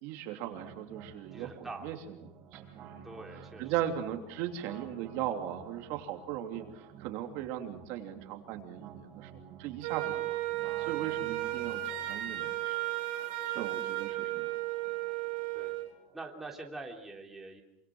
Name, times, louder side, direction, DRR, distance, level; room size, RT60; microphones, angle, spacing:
voice 1, 0.0-2.0 2.5-3.0 3.6-10.4 10.8-11.8 12.1-12.8 13.1-14.6 14.8-14.9, right 11 dB, 55° right, 4 dB, 3.1 m, -38 dB
sound 1, 0.5-16.5, right 7 dB, 35° right, 4.5 m, -53 dB
voice 2, 1.3-2.0 3.0-3.7 13.4-14.0 15.5-15.7 16.1-17.6, right 2 dB, 5° right, 0 dB, 3.3 m, -45 dB
Wind instrument woodwind instrument, 9.8-15.9, right 16 dB, 70° right, 4.8 m, -34 dB
27.0 x 25.5 x 6.3 m, 0.78 s
cardioid pair, 165°, 5 cm